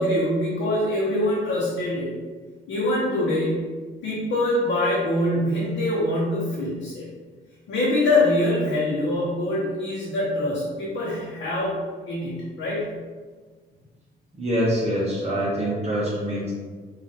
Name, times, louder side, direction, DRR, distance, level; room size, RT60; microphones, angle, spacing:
voice 1, 0.0-2.2 2.7-3.7 4.0-7.0 7.7-11.8 12.1-12.9, left 1 dB, 75° left, -8 dB, 1.2 m, -24 dB
voice 2, 14.3-16.5, equal, 30° right, -8 dB, 1.2 m, -25 dB
4.8 x 2.7 x 3.0 m, 1.5 s
cardioid pair, 90°, 20 cm